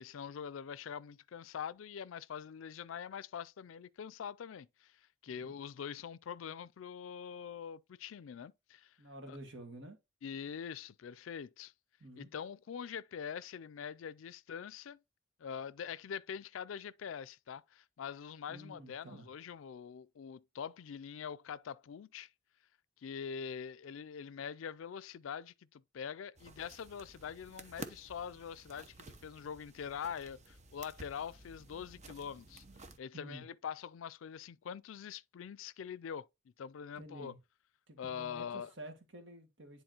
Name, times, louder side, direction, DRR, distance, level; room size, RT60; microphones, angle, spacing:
voice 1, 0.0-9.0 9.3-9.4 10.2-11.7 12.2-15.0 15.4-22.3 23.0-32.6 33.0-36.3 36.6-37.3 38.0-38.7, left 7 dB, 85° left, 0.4 m, -44 dB
voice 2, 9.0-10.0 12.0-12.3 18.5-19.3 33.1-33.4 37.0-37.4 37.9-39.8, right 1 dB, 70° right, 1.9 m, -50 dB
sound 1, 26.4-33.0, right 2 dB, 35° right, 0.8 m, -52 dB
10.5 x 4.0 x 2.9 m
head